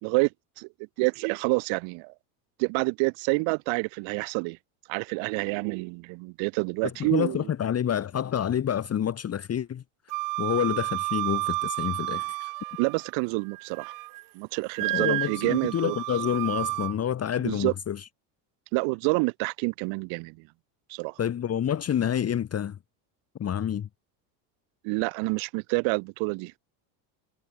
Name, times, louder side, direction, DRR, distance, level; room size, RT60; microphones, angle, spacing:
voice 1, 0.0-0.3 0.6-0.7 1.0-2.1 2.6-4.6 4.9-7.4 12.8-13.9 14.3-16.0 17.4-17.7 18.7-20.5 20.9-21.2 24.8-26.5, right 31 dB, 65° right, 1.5 m, -28 dB
voice 2, 7.0-9.8 10.4-12.5 14.9-18.1 21.2-22.8 23.4-23.9, left 9 dB, 30° left, 1.6 m, -28 dB
Wind instrument woodwind instrument, 10.1-13.1 13.5-14.2 14.7-16.9, right 21 dB, 45° right, 0.5 m, -31 dB
supercardioid pair, 105°, 49 cm